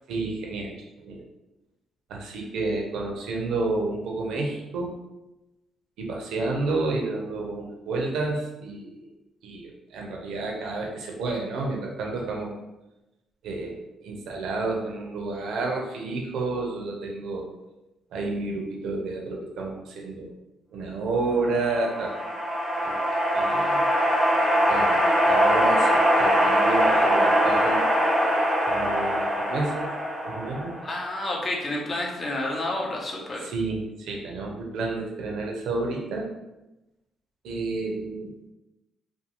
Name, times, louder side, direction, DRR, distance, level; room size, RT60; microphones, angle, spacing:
voice 1, 0.1-1.3 2.1-5.0 6.0-9.1 9.4-12.5 13.4-13.8 14.0-17.5 18.1-20.3 20.7-22.2 22.8-23.7 24.7-27.8 28.7-29.9 30.2-30.7 33.4-36.3 37.4-38.3, right 3 dB, 80° right, 0 dB, 0.5 m, -30 dB
sound 1, 21.5-31.0, equal, 10° right, 0.6 m, -22 dB
voice 2, 23.4-23.8 30.8-33.5, left 1 dB, 35° left, -1 dB, 0.7 m, -30 dB
2.5 x 2.4 x 2.8 m, 0.97 s
cardioid pair, 90°, 0 cm